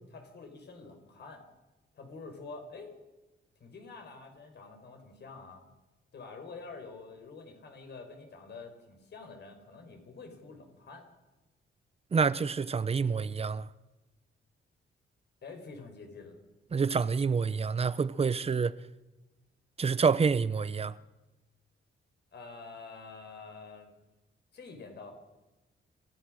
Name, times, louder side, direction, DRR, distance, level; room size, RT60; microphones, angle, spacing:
voice 1, 0.0-1.4 1.9-3.0 3.6-5.6 6.1-11.1 15.4-16.4 22.3-23.9 24.5-25.1, left 4 dB, 55° left, 4.9 m, -47 dB
voice 2, 12.1-13.7 16.7-18.7 19.8-20.9, right 5 dB, 30° right, 0.7 m, -27 dB
27.5 x 15.5 x 6.4 m
wide cardioid pair, 140°, 21 cm